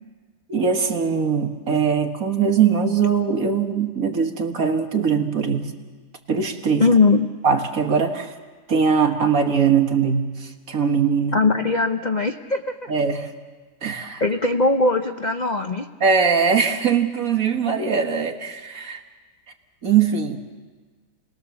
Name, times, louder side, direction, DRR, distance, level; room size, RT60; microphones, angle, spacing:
voice 1, 0.5-5.7 6.3-6.9 7.4-8.3 8.7-11.4 12.9-13.3 13.8-14.2 16.0-19.0 19.8-20.4, right 6 dB, 55° right, 4 dB, 2.0 m, -21 dB
voice 2, 6.8-7.3 11.3-12.9 14.2-15.9, left 3 dB, 45° left, 6 dB, 0.6 m, -20 dB
30.0 x 20.0 x 7.0 m, 1.4 s
omnidirectional pair, 1.8 m